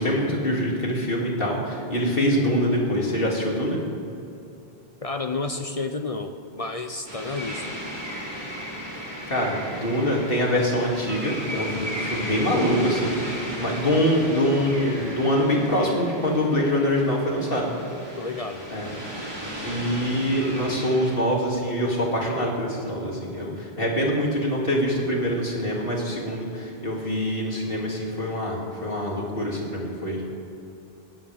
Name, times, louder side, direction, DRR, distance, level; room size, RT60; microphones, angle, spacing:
voice 1, 0.0-3.8 9.0-17.7 18.7-18.9 19.6-30.2, equal, 60° left, -2 dB, 3.1 m, -24 dB
voice 2, 5.0-7.8 18.2-18.7, left 3 dB, 40° left, 7 dB, 0.8 m, -31 dB
sound 1, 7.1-21.1, equal, 25° right, 3.1 m, -35 dB
21.0 x 18.0 x 3.6 m, 2.6 s
omnidirectional pair, 1.1 m